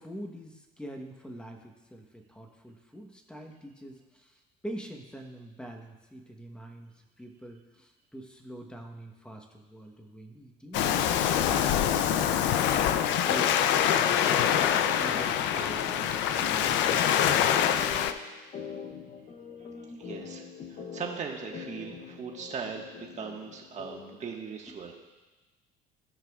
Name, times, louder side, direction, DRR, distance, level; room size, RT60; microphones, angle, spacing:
voice 1, 0.0-4.4 4.6-6.9 7.2-17.5 24.7-24.8, right 1 dB, 5° left, 3 dB, 1.0 m, -45 dB
Waves surf, 10.7-18.1, left 9 dB, 70° left, 0.5 m, -25 dB
sound 1, 12.5-24.3, left 6 dB, 40° left, 0.8 m, -43 dB
voice 2, 20.0-24.9, right 5 dB, 35° right, 1 dB, 1.5 m, -39 dB
17.0 x 5.8 x 2.4 m, 1.2 s
cardioid pair, 115°, 19 cm